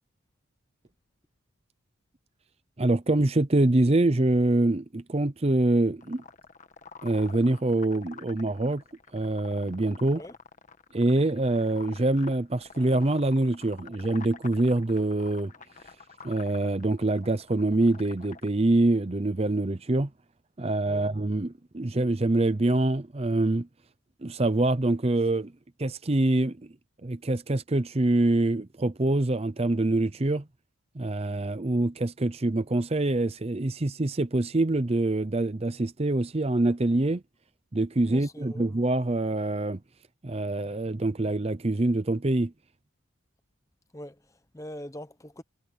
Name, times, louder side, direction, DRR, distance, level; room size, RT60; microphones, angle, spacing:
voice 1, 2.8-6.2 7.0-8.8 9.1-10.2 10.9-15.5 16.2-20.1 20.6-23.7 24.2-25.5 25.8-26.7 27.0-30.5 30.9-37.2 37.7-39.8 40.2-42.5, right 2 dB, 30° right, 0.6 m, -25 dB
sound 1, 6.0-18.5, left 5 dB, 35° left, 1.4 m, -48 dB
voice 2, 38.1-38.7 43.9-45.4, equal, 15° left, 1.0 m, -43 dB
head